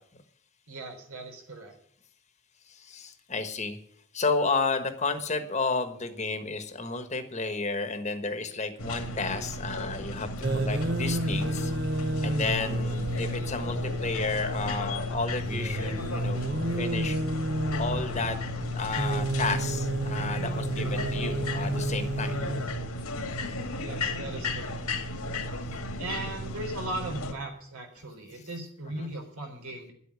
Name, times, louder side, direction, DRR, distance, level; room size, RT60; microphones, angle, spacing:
voice 1, 0.7-1.7 13.0-13.3 23.7-24.8 26.0-29.9, right 2 dB, 80° right, 3 dB, 4.1 m, -38 dB
voice 2, 2.7-3.8 4.1-11.7 12.2-16.4 16.8-17.2 17.8-18.4 18.7-22.4 29.0-29.1, left 3 dB, 30° left, 8 dB, 1.3 m, -32 dB
sound 1, 8.8-27.3, left 1 dB, 85° left, 2.1 m, -35 dB
sound 2, 10.4-22.7, right 2 dB, 45° right, 0.7 m, -30 dB
11.0 x 8.2 x 9.5 m, 0.63 s
head